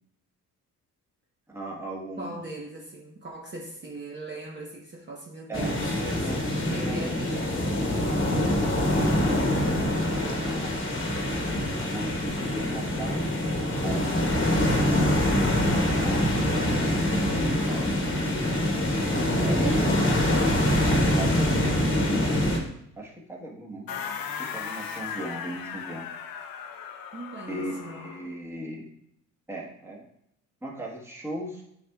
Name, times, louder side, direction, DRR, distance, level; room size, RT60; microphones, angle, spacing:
voice 1, 1.5-2.3 5.5-7.3 8.7-10.9 11.9-14.4 16.0-17.9 19.0-19.9 20.3-21.9 23.0-23.9 24.3-26.1 27.5-28.9 29.5-30.1 30.6-31.6, right 1 dB, 10° right, -3 dB, 1.3 m, -37 dB
voice 2, 2.2-7.8 19.1-20.1 23.9-24.2 27.1-28.1, right 2 dB, 35° right, -2 dB, 0.9 m, -39 dB
sound 1, 5.5-22.6, left 1 dB, 35° left, 1.2 m, -25 dB
sound 2, 23.9-28.3, left 7 dB, 85° left, 0.7 m, -37 dB
9.7 x 4.1 x 2.3 m, 0.76 s
cardioid pair, 130°, 34 cm